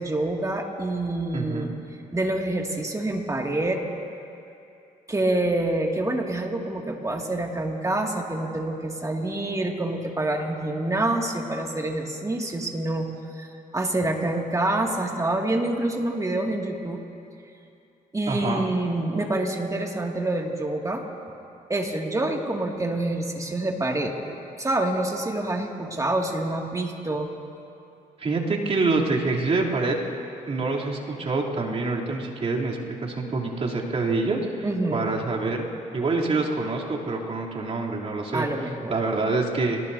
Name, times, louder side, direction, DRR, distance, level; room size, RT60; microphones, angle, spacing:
voice 1, 0.0-1.7 2.1-3.8 5.1-13.5 13.7-17.0 18.1-21.0 21.7-24.1 24.6-27.3 34.6-35.0 38.3-38.9, right 2 dB, 20° right, 1 dB, 2.4 m, -27 dB
voice 2, 1.3-1.7 18.3-18.7 28.2-29.9 30.5-35.6 35.9-38.5 38.9-39.8, right 3 dB, 45° right, -4 dB, 3.3 m, -26 dB
27.0 x 19.0 x 2.8 m, 2.6 s
supercardioid pair, 70°, 15 cm